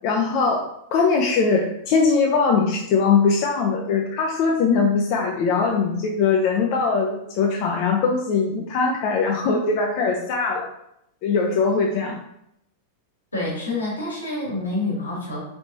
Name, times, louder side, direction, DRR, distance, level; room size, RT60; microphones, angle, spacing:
voice 1, 0.0-10.7 11.2-12.2, left 4 dB, 45° left, 0 dB, 0.5 m, -21 dB
voice 2, 13.3-15.4, left 2 dB, 80° left, -5 dB, 1.5 m, -27 dB
4.1 x 3.4 x 2.7 m, 0.77 s
figure-of-eight pair, 90°, 0 cm